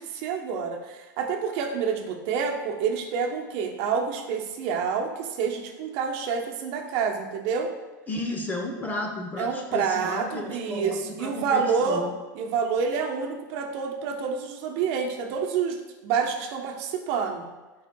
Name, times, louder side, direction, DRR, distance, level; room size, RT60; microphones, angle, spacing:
voice 1, 0.0-7.7 9.4-12.0 12.3-15.8 16.0-17.5, right 6 dB, 55° right, 3 dB, 0.9 m, -28 dB
voice 2, 8.1-12.1, left 2 dB, 15° left, 2 dB, 0.8 m, -33 dB
8.2 x 5.0 x 2.3 m, 1.2 s
hypercardioid pair, 115°, 11 cm